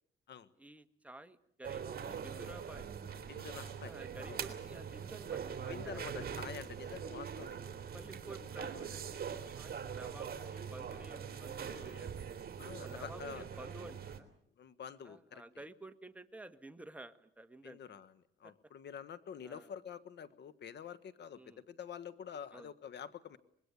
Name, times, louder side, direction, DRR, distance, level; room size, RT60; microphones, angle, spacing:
voice 1, 0.6-2.9 3.8-6.3 7.9-12.1 12.8-14.3 15.0-17.8 18.4-18.5 19.4-19.7 21.4-21.6 22.5-22.7, right 1 dB, 5° right, 9 dB, 1.5 m, -52 dB
sound 1, 1.6-14.2, right 7 dB, 50° right, 3.0 m, -43 dB
voice 2, 3.3-3.9 4.3-4.4 5.6-7.6 11.8-12.0 12.6-13.5 14.6-15.4 17.6-18.1 18.4-23.4, left 8 dB, 60° left, 16 dB, 1.5 m, -47 dB
25.0 x 21.5 x 8.4 m, 0.68 s
cardioid pair, 90°, 20 cm